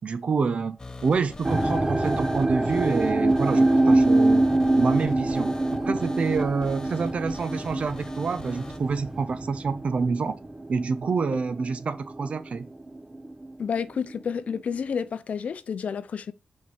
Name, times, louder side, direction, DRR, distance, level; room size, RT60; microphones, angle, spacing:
voice 1, 0.0-4.4 4.7-5.5 5.8-10.4 10.7-12.7, right 5 dB, 55° right, 0.8 m, -27 dB
sound 1, 0.8-8.8, left 2 dB, 30° left, 0.9 m, -43 dB
sound 2, 1.4-12.6 12.9-13.5 14.1-14.2, right 2 dB, 20° right, 0.9 m, -25 dB
voice 2, 13.6-16.3, left 6 dB, 70° left, 0.5 m, -30 dB
5.7 x 4.7 x 5.5 m
wide cardioid pair, 105°, 2 cm